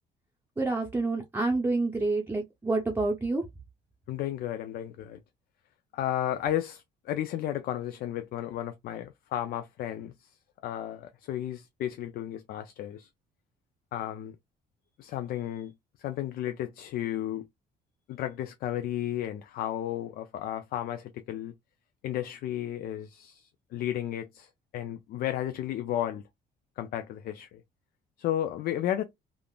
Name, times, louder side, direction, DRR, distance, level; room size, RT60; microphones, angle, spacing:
voice 1, 0.6-3.4, right 3 dB, 15° right, 0.6 m, -28 dB
voice 2, 4.1-5.2 5.9-13.1 13.9-14.4 15.0-17.5 18.1-21.5 22.0-26.2 26.8-27.6 28.2-29.0, left 12 dB, 65° left, 0.4 m, -33 dB
3.4 x 2.4 x 2.3 m
cardioid pair, 110°, 17 cm